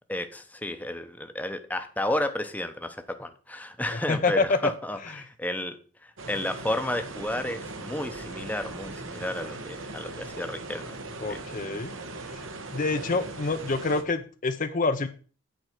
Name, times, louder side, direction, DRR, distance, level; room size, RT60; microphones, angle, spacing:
voice 1, 0.1-5.8 6.0-11.0 11.3-11.4, left 1 dB, 10° left, 8 dB, 0.8 m, -32 dB
voice 2, 3.9-4.7 11.2-11.9 12.7-15.1, left 3 dB, 40° left, 9 dB, 0.6 m, -26 dB
sound 1, 6.2-14.0, right 2 dB, 75° right, 1.4 m, -39 dB
9.2 x 4.7 x 7.6 m, 0.39 s
head